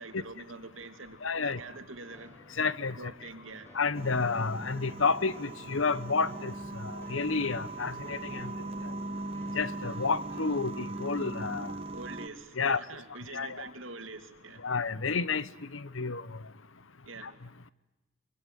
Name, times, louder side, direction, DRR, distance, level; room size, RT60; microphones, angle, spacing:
voice 1, 0.0-2.4 3.0-3.7 11.9-14.7 17.1-17.4, right 3 dB, 80° right, 2.8 m, -45 dB
voice 2, 1.2-1.6 2.6-2.9 3.7-6.5 6.8-8.5 9.5-11.7 12.6-12.8 13.3-13.7 14.6-15.4 15.7-16.2, left 4 dB, 80° left, 1.0 m, -30 dB
sound 1, 2.1-10.4, left 1 dB, 10° left, 4.4 m, -54 dB
sound 2, 3.9-12.3, right 2 dB, 30° right, 1.7 m, -39 dB
24.5 x 23.5 x 9.3 m
head